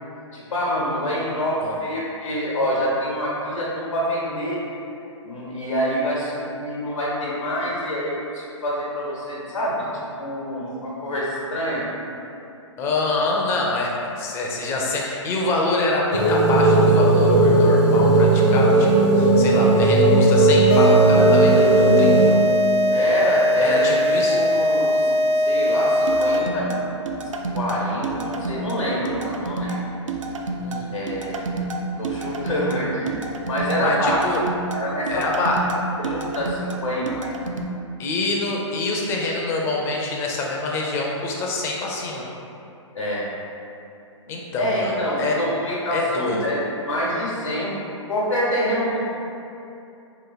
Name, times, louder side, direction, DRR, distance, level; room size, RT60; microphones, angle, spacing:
voice 1, 0.3-4.6 5.2-11.9 22.9-23.9 24.3-26.8 27.5-29.8 30.9-31.5 32.0-34.2 34.7-35.5 36.0-37.3 42.9-43.3 44.6-47.8 48.1-49.0, equal, 85° left, -6 dB, 1.0 m, -26 dB
voice 2, 12.8-22.4 23.6-24.4 30.6-30.9 33.8-34.4 35.1-35.6 38.0-42.3 44.3-45.4 45.9-46.5, left 2 dB, 15° left, -2 dB, 0.4 m, -25 dB
sound 1, 16.1-22.3, right 2 dB, 65° right, 0.9 m, -16 dB
sound 2, 20.7-26.7, left 1 dB, 60° left, 0.6 m, -20 dB
sound 3, 26.1-37.6, right 3 dB, 80° right, 0.4 m, -29 dB
3.0 x 2.5 x 3.9 m, 2.8 s
hypercardioid pair, 130°, 16 cm